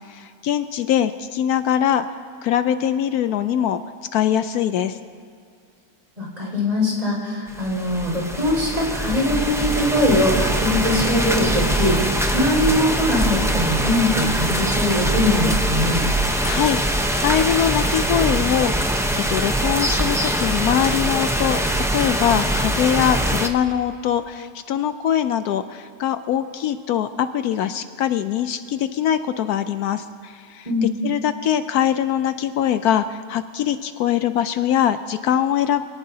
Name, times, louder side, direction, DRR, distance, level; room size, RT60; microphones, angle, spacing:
voice 1, 0.1-2.1 2.4-3.8 4.1-5.0 16.4-16.8 17.2-18.9 19.3-35.9, left 10 dB, 75° left, 10 dB, 1.1 m, -22 dB
voice 2, 6.2-16.0 30.7-30.9, left 1 dB, 25° right, -4 dB, 5.4 m, -21 dB
sound 1, 7.5-23.5, right 1 dB, 5° right, 0.5 m, -22 dB
26.0 x 18.0 x 2.8 m, 2.2 s
omnidirectional pair, 1.7 m